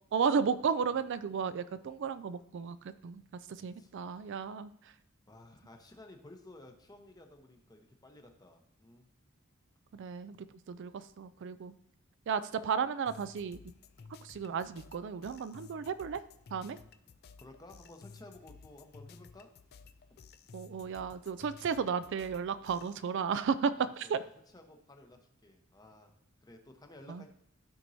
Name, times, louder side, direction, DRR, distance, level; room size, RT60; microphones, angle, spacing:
voice 1, 0.1-3.2 3.5-4.9 9.9-11.7 12.3-13.6 14.2-16.2 16.5-16.8 20.5-24.2 27.1-27.2, right 6 dB, 60° right, 13 dB, 0.4 m, -34 dB
voice 2, 3.8-4.3 5.3-9.1 17.4-19.5 23.7-27.3, left 1 dB, 20° left, 4 dB, 0.9 m, -55 dB
sound 1, 13.1-23.0, left 5 dB, 50° left, 0.4 m, -55 dB
13.0 x 4.5 x 2.7 m, 0.77 s
head